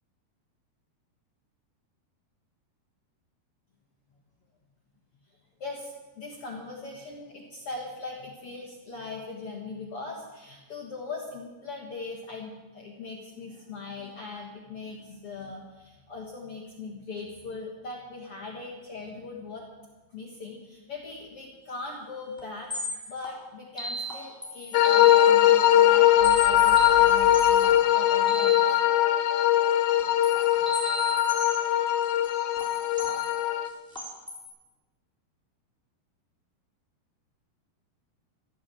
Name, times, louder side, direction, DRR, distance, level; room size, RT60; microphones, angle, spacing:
voice 1, 5.6-19.6 20.1-22.7 23.1-28.9, left 3 dB, 55° left, -1 dB, 1.6 m, -40 dB
sound 1, 21.8-21.9 22.4-22.5 22.7-25.4 25.7-28.6 30.0-34.5, right 1 dB, ahead, 2.7 m, -37 dB
sound 2, 24.7-33.7, left 12 dB, 90° left, 3.0 m, -21 dB
sound 3, 26.2-27.5, right 9 dB, 65° right, 2.8 m, -42 dB
13.0 x 13.0 x 7.6 m, 1.2 s
omnidirectional pair, 4.9 m